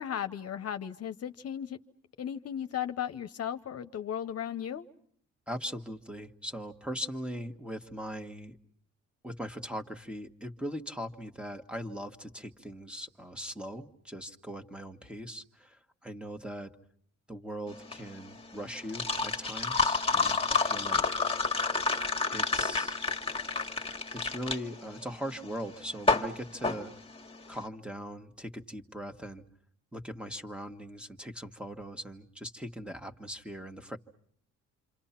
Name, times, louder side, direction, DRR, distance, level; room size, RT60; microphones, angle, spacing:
voice 1, 0.0-1.8 2.2-4.9, left 9 dB, 55° left, 9 dB, 0.9 m, -36 dB
voice 2, 5.5-8.6 9.2-16.7 17.3-21.0 22.3-23.0 24.1-26.9 27.5-29.4 29.9-34.0, equal, 5° right, 4 dB, 1.6 m, -40 dB
sound 1, 17.7-27.6, left 4 dB, 20° left, 1.7 m, -30 dB
28.0 x 26.0 x 5.9 m, 0.62 s
cardioid pair, 90°, 30 cm